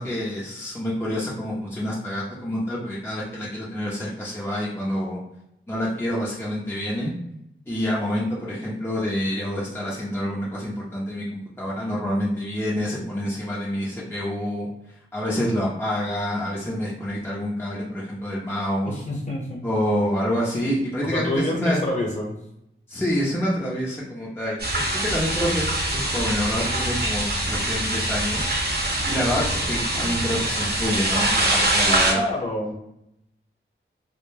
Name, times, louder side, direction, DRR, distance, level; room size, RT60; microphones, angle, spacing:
voice 1, 0.0-5.2 5.7-7.1 7.7-14.7 15.1-18.9 19.6-21.8 22.9-28.5 29.1-32.2, equal, 10° left, -6 dB, 0.6 m, -27 dB
voice 2, 18.8-19.6 21.0-22.3 32.1-32.7, left 1 dB, 35° left, -1 dB, 0.9 m, -27 dB
sound 1, 24.6-32.1, right 1 dB, 50° right, 0.8 m, -24 dB
2.1 x 2.1 x 3.1 m, 0.80 s
wide cardioid pair, 75°, 21 cm